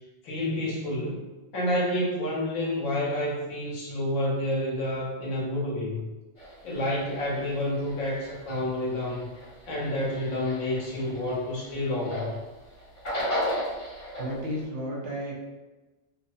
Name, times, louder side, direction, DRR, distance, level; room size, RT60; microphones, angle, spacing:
voice 1, 0.2-1.2 1.5-6.1 6.6-9.3 9.7-12.4, left 1 dB, 85° left, -4 dB, 1.2 m, -29 dB
sound 1, 6.4-12.5 12.8-14.5, equal, 65° left, 1.4 m, -35 dB
voice 2, 14.2-15.3, equal, 65° right, -3 dB, 0.9 m, -32 dB
2.8 x 2.0 x 2.6 m, 1.2 s
omnidirectional pair, 1.4 m